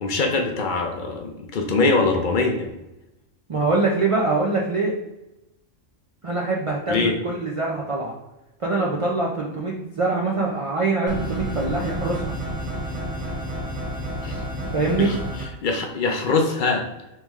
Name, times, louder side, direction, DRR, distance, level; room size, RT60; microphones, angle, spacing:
voice 1, 0.0-2.7 6.9-7.1 14.2-14.4 15.0-15.2 15.6-16.9, left 3 dB, 55° left, 3 dB, 0.5 m, -22 dB
voice 2, 3.5-5.0 6.2-8.1 8.6-12.2 14.7-15.1, right 3 dB, 65° right, -3 dB, 0.3 m, -23 dB
sound 1, 11.1-15.5, equal, 35° right, 1.6 m, -30 dB
3.5 x 3.3 x 3.1 m, 0.94 s
omnidirectional pair, 1.3 m